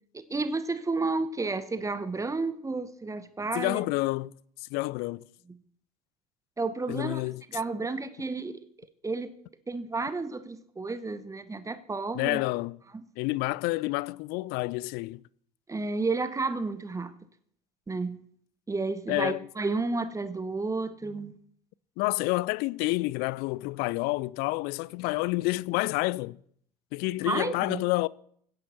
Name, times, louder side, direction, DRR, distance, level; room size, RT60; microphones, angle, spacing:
voice 1, 0.1-3.9 6.6-7.2 7.5-8.6 9.0-9.3 9.7-12.4 15.7-17.1 17.9-18.2 18.7-21.3 27.2-27.8, right 3 dB, 15° right, 1.1 m, -31 dB
voice 2, 3.5-4.3 4.6-5.2 6.9-7.4 12.1-12.8 13.2-15.2 19.1-19.5 22.0-26.4 26.9-28.1, left 21 dB, 50° left, 0.4 m, -29 dB
16.5 x 10.5 x 4.4 m
figure-of-eight pair, 60°, 21 cm